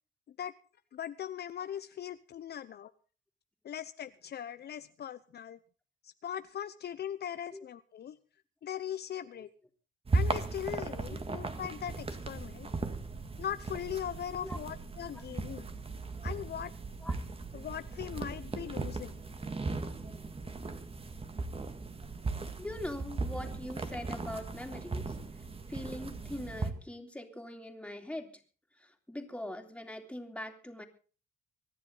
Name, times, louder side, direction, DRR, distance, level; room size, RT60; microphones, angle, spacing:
voice 1, 0.9-2.9 3.6-5.6 6.0-8.2 8.6-9.5 10.1-12.7 13.4-15.7 16.2-16.7 17.5-19.2, left 9 dB, 55° left, 12 dB, 0.8 m, -40 dB
sound 1, 10.1-26.7, right 3 dB, 30° right, 2.0 m, -37 dB
voice 2, 22.6-25.2 25.7-28.3 28.8-30.8, left 1 dB, 5° left, 4 dB, 3.3 m, -42 dB
24.5 x 10.5 x 3.9 m, 0.38 s
cardioid pair, 90°, 20 cm